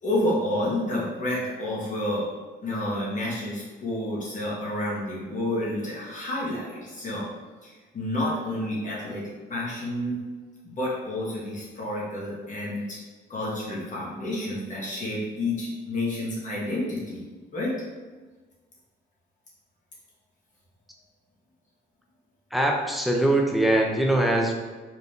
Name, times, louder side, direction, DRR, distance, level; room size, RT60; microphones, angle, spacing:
voice 1, 0.0-2.3 2.6-7.2 7.6-9.2 9.5-10.1 10.6-13.0 13.3-17.2 17.5-17.7, left 1 dB, 40° left, -6 dB, 1.5 m, -29 dB
voice 2, 22.5-24.5, right 1 dB, ahead, 1 dB, 0.6 m, -22 dB
4.3 x 3.3 x 2.8 m, 1.3 s
cardioid pair, 90°, 20 cm